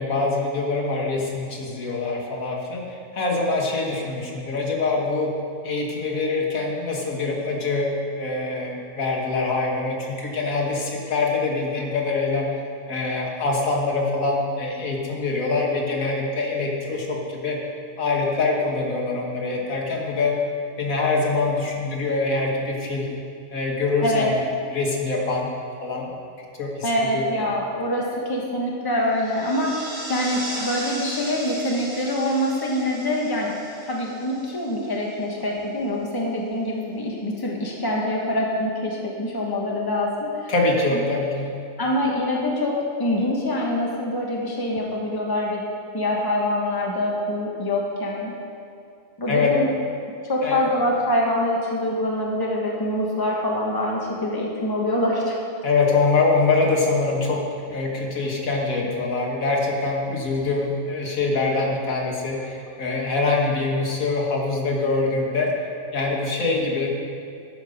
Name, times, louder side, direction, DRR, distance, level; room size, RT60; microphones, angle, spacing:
voice 1, 0.0-5.3 5.6-12.5 12.9-17.6 18.0-20.4 20.8-23.1 23.5-24.4 24.7-25.5 25.8-26.1 26.6-27.3 40.5-41.6 49.3-49.5 50.4-50.6 55.6-65.5 65.9-66.9, left 3 dB, 80° left, -1 dB, 1.8 m, -24 dB
voice 2, 26.8-33.5 33.8-40.5 40.9-41.0 41.8-45.6 45.9-48.3 49.2-49.7 50.2-55.4, left 1 dB, 15° left, -2 dB, 1.2 m, -25 dB
sound 1, 29.1-35.0, right 1 dB, 35° right, 1.8 m, -36 dB
12.5 x 5.2 x 5.3 m, 2.4 s
omnidirectional pair, 1.4 m